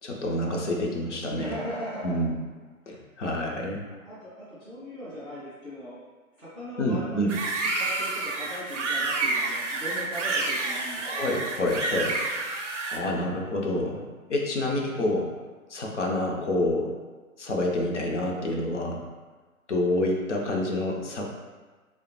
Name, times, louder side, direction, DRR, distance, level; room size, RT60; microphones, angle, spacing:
voice 1, 0.0-1.6 2.0-2.3 2.9-3.8 6.8-7.3 11.0-12.2 12.9-14.0 14.3-15.3 15.7-16.9 17.4-19.0 19.7-21.3, left 1 dB, 55° left, 0 dB, 0.5 m, -28 dB
voice 2, 1.3-2.3 4.0-5.9 6.4-11.1, equal, ahead, -22 dB, 0.5 m, -39 dB
sound 1, 7.3-13.0, right 3 dB, 60° right, 0.5 m, -29 dB
3.3 x 2.1 x 2.8 m, 1.3 s
figure-of-eight pair, 130°, 43 cm